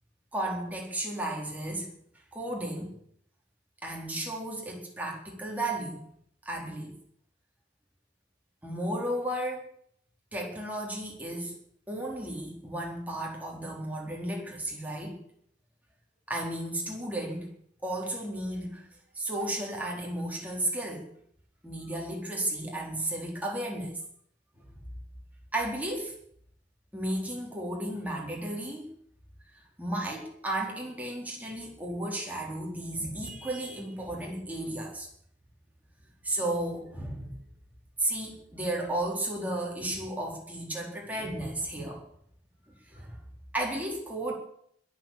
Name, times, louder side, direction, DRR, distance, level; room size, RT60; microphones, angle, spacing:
voice 1, 0.3-1.9 2.3-2.9 3.8-6.0 6.4-6.9 8.6-9.7 10.3-11.5 11.9-15.2 16.3-17.5 17.8-18.9 19.1-21.1 21.6-24.0 25.5-26.2 26.9-28.9 29.5-35.1 36.2-37.4 38.0-42.0 42.7-43.2 43.5-44.3, right 1 dB, 10° right, -1 dB, 4.2 m, -34 dB
21.5 x 7.6 x 7.4 m, 0.66 s
head